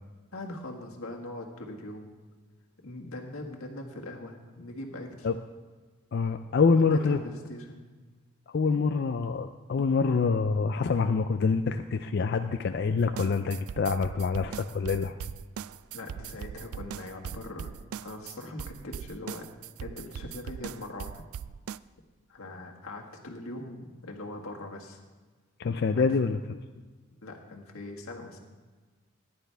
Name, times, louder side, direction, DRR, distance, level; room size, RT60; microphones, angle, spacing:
voice 1, 0.3-2.1 2.8-5.3 6.8-7.9 8.6-8.8 15.9-17.7 18.0-19.5 19.8-21.2 22.3-25.0 25.9-26.1 27.2-28.4, left 2 dB, 90° left, 1 dB, 1.7 m, -41 dB
voice 2, 6.1-7.2 8.5-15.2 25.6-26.4, left 4 dB, 50° left, 7 dB, 0.4 m, -26 dB
sound 1, 13.0-21.8, right 8 dB, 85° right, 0.3 m, -40 dB
14.5 x 10.5 x 3.4 m, 1.4 s
head